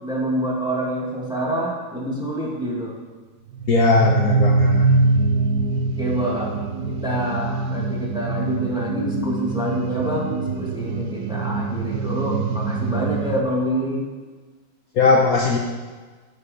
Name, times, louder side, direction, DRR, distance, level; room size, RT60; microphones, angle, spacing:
voice 1, 0.0-2.9 6.0-14.0, right 1 dB, ahead, -5 dB, 2.3 m, -27 dB
sound 1, 3.5-13.4, right 3 dB, 65° right, 1.0 m, -23 dB
voice 2, 3.7-4.9 14.9-15.6, left 3 dB, 55° left, -1 dB, 1.3 m, -18 dB
9.6 x 8.5 x 5.2 m, 1.4 s
omnidirectional pair, 2.0 m